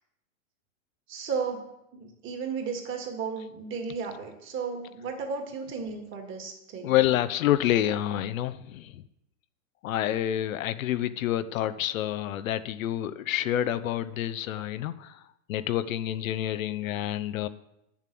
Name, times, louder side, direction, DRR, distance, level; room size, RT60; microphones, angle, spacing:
voice 1, 1.1-1.6 1.9-7.0, right 5 dB, 30° right, 4 dB, 2.2 m, -34 dB
voice 2, 6.8-9.0 9.8-15.2 15.5-17.5, left 12 dB, 75° left, 13 dB, 0.8 m, -28 dB
8.9 x 7.3 x 7.7 m, 0.84 s
hypercardioid pair, 135°, 41 cm